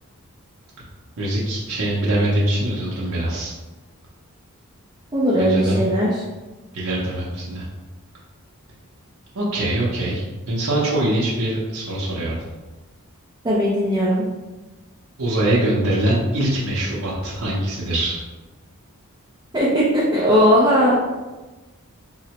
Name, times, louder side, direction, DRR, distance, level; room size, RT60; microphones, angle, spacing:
voice 1, 1.2-3.5 5.3-5.8 6.7-7.6 9.3-12.4 15.2-18.2, right 1 dB, 75° right, -7 dB, 0.6 m, -23 dB
voice 2, 5.1-6.2 13.4-14.2 19.5-20.9, equal, 20° right, -8 dB, 0.5 m, -18 dB
3.8 x 2.1 x 2.9 m, 1.2 s
head